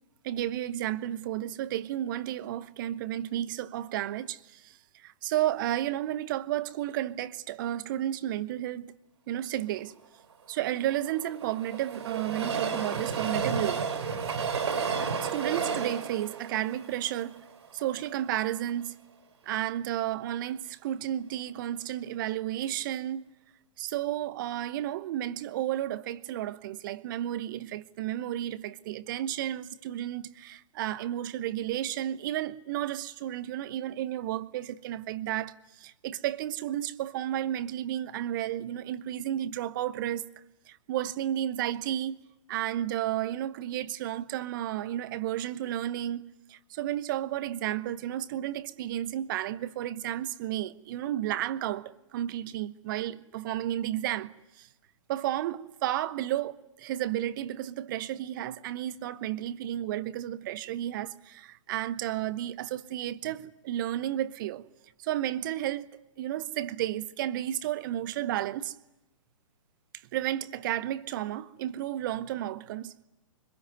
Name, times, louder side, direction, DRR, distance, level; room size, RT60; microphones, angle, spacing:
voice 1, 0.2-8.9 9.3-9.9 10.5-13.9 15.2-17.4 17.7-18.9 19.5-23.3 23.8-40.2 40.7-42.2 42.5-46.2 46.5-54.7 55.1-64.7 65.0-68.7 70.1-72.9, right 12 dB, 40° right, 1.0 m, -32 dB
Train, 10.6-17.9 18.4-18.5 18.7-18.8, right 6 dB, 55° right, 3.5 m, -32 dB
25.5 x 21.0 x 9.5 m
figure-of-eight pair, 115°, 17 cm